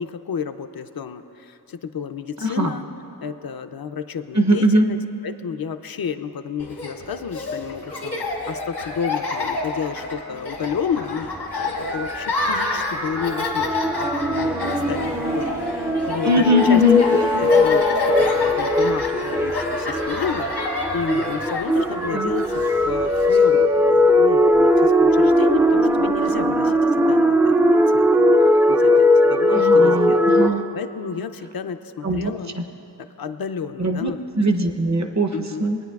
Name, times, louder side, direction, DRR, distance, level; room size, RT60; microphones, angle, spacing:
voice 1, 0.0-2.9 3.2-5.0 5.2-11.3 11.6-15.1 15.3-16.8 17.1-22.5 22.9-28.1 28.4-32.6 33.2-34.2 35.3-35.6, left 7 dB, 60° left, 8 dB, 0.5 m, -31 dB
voice 2, 2.4-2.7 4.3-4.9 16.2-17.0 22.1-22.3 29.5-30.6 32.0-32.6 33.8-35.3 35.6-35.8, left 1 dB, 45° right, 5 dB, 0.7 m, -20 dB
Laughter, 6.6-23.4, left 2 dB, 85° left, 1.4 m, -29 dB
sound 1, 10.5-26.8, right 1 dB, 80° right, 1.7 m, -43 dB
sound 2, 11.5-30.5, left 1 dB, 5° right, 0.3 m, -19 dB
21.5 x 9.4 x 2.3 m, 2.9 s
wide cardioid pair, 85°, 40 cm